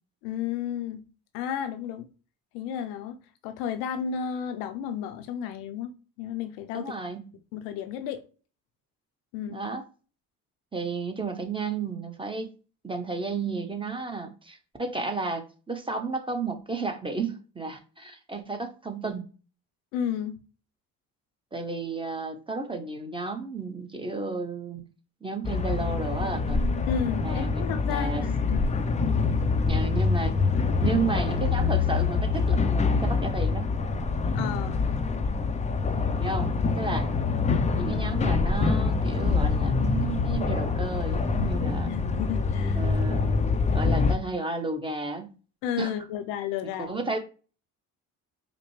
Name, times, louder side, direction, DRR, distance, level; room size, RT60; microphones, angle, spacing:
voice 1, 0.2-1.0 1.3-2.1 2.5-7.0 7.5-8.2 9.3-9.6 19.9-20.4 26.9-28.7 34.3-34.9 37.4-38.1 41.8-42.8 45.6-46.9, left 9 dB, 90° left, 0.6 m, -33 dB
voice 2, 6.7-7.3 9.5-9.8 10.7-12.5 12.8-19.3 21.5-24.8 25.2-26.6 27.2-28.2 29.6-30.3 30.8-33.7 36.2-36.5 36.8-37.1 37.7-41.9 42.7-43.3 43.7-45.3 45.8-45.9 46.8-47.2, right 3 dB, 15° right, 0.8 m, -32 dB
sound 1, 25.4-44.2, left 4 dB, 20° left, 0.4 m, -25 dB
5.0 x 2.1 x 3.1 m
supercardioid pair, 80°, 39 cm